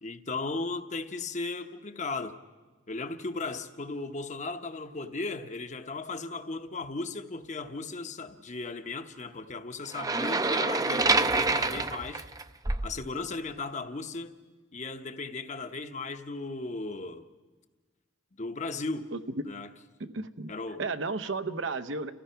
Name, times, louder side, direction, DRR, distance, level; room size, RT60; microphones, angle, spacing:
voice 1, 0.0-2.4 2.9-12.2 12.8-14.3 14.7-17.3 18.4-19.1 19.4-19.7 20.5-20.8, left 3 dB, 40° left, 0.9 m, -36 dB
sound 1, 9.9-13.0, right 3 dB, 20° right, 0.5 m, -27 dB
voice 2, 20.0-20.5 20.8-22.1, right 3 dB, 80° right, 0.9 m, -33 dB
30.0 x 15.5 x 5.7 m
head